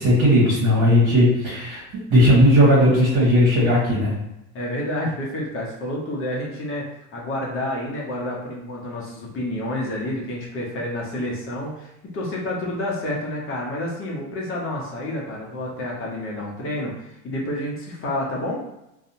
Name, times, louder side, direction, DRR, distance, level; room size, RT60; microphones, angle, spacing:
voice 1, 0.0-4.2, equal, 45° right, -7 dB, 1.3 m, -17 dB
voice 2, 4.5-18.6, left 1 dB, 30° left, -3 dB, 0.8 m, -29 dB
2.7 x 2.3 x 2.6 m, 0.86 s
supercardioid pair, 115°, 41 cm